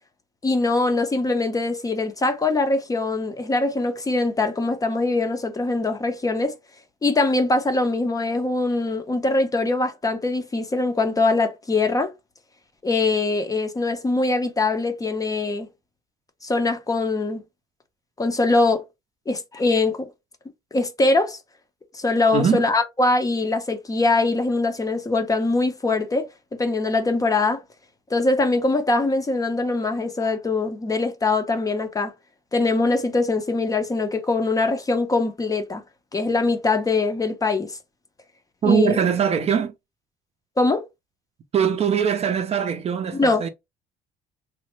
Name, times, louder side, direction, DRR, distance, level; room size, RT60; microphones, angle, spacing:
voice 1, 0.4-6.6 7.0-12.1 12.8-15.7 16.4-17.4 18.2-18.8 19.3-20.1 20.7-21.4 21.9-26.3 26.6-27.6 28.1-32.1 32.5-35.8 36.1-37.8 38.6-39.0 40.6-40.8 43.1-43.4, left 3 dB, 20° left, 0.5 m, -22 dB
voice 2, 22.3-22.6 38.6-39.7 41.5-43.5, right 7 dB, 40° right, 0.5 m, -21 dB
3.0 x 2.0 x 3.0 m
cardioid pair, 110°, 17 cm